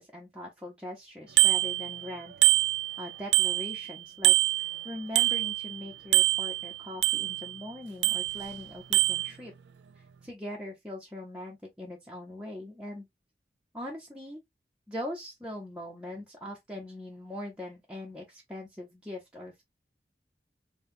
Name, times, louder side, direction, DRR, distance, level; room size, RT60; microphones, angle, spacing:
voice 1, 0.0-2.4 3.0-9.5 10.2-13.1 13.7-14.4 14.9-19.6, left 1 dB, 5° right, 0.9 m, -41 dB
Bicycle bell, 1.4-2.1 2.4-3.9 4.2-5.8 6.1-7.6 8.0-8.6 8.9-9.3, right 16 dB, 85° right, 0.4 m, -25 dB
5.5 x 2.4 x 2.7 m
head